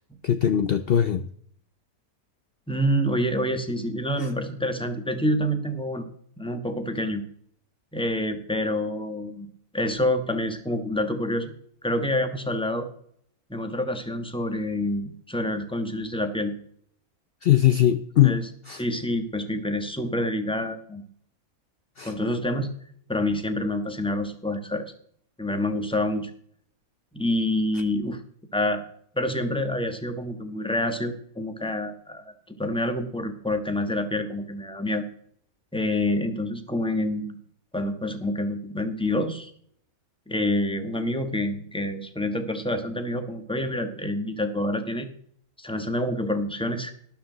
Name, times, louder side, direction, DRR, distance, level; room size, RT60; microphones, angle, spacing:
voice 1, 0.2-1.3 4.2-4.3 17.4-18.4 18.7-18.8 22.0-22.1, left 11 dB, 65° left, 10 dB, 0.6 m, -21 dB
voice 2, 2.7-6.0 6.4-7.2 7.9-9.5 9.7-11.6 11.8-12.9 13.5-16.5 18.2-18.4 18.8-21.0 22.0-22.7 23.1-24.9 25.4-26.3 27.1-28.2 28.5-28.8 29.1-32.3 32.6-35.0 35.7-37.4 37.7-39.5 40.3-45.1 45.6-46.9, left 1 dB, 5° left, 7 dB, 1.2 m, -27 dB
12.5 x 11.5 x 4.0 m, 0.62 s
omnidirectional pair, 1.6 m